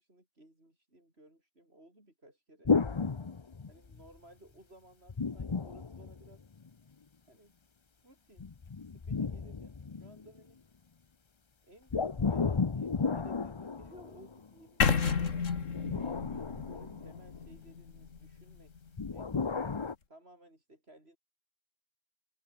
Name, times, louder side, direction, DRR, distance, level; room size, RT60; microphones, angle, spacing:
voice 1, 0.0-2.7 3.7-6.5 7.3-7.5 8.0-10.6 11.6-15.6 16.2-18.7 19.1-19.7 20.1-21.2, right 1 dB, 45° right, 8.5 m, -59 dB
sound 1, 2.6-4.1 5.1-6.7 8.4-10.4 11.9-14.5 15.6-17.5 19.0-19.9, left 5 dB, 30° left, 0.6 m, -33 dB
sound 2, 14.8-18.8, left 6 dB, 65° left, 2.0 m, -32 dB
open air
omnidirectional pair, 1.4 m